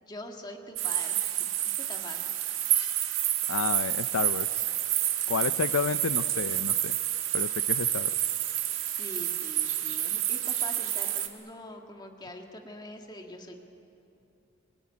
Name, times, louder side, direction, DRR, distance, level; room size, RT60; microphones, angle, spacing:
voice 1, 0.0-2.4 9.0-13.6, left 1 dB, 20° left, 3 dB, 1.7 m, -44 dB
sound 1, 0.8-11.3, right 12 dB, 75° right, 1.9 m, -29 dB
voice 2, 3.5-4.7 5.3-7.0 7.3-8.3, left 6 dB, 85° left, 13 dB, 0.5 m, -31 dB
24.5 x 20.5 x 9.7 m, 2.8 s
head